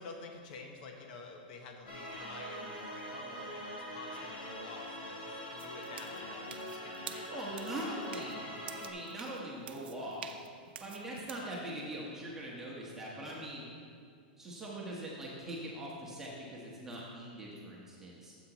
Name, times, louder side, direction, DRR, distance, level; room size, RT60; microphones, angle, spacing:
voice 1, 0.0-7.8 8.2-8.5, left 4 dB, 55° left, 2 dB, 1.1 m, -49 dB
sound 1, 1.9-8.9, equal, 75° left, 2.5 m, -43 dB
sound 2, 5.6-11.5, right 9 dB, 85° right, 0.6 m, -49 dB
voice 2, 7.3-8.4 8.8-10.2 10.8-13.7 14.4-18.4, right 1 dB, 10° right, -5 dB, 1.3 m, -42 dB
12.5 x 8.0 x 3.0 m, 2.3 s
supercardioid pair, 155°, 5 cm